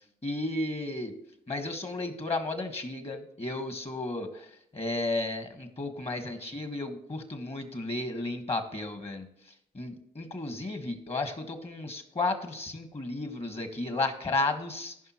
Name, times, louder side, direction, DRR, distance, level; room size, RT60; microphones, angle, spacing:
voice 1, 0.2-1.1 1.5-4.4 4.7-9.3 9.7-14.9, left 2 dB, 35° left, 7 dB, 1.6 m, -33 dB
14.5 x 5.5 x 3.1 m, 0.74 s
supercardioid pair, 50°, 18 cm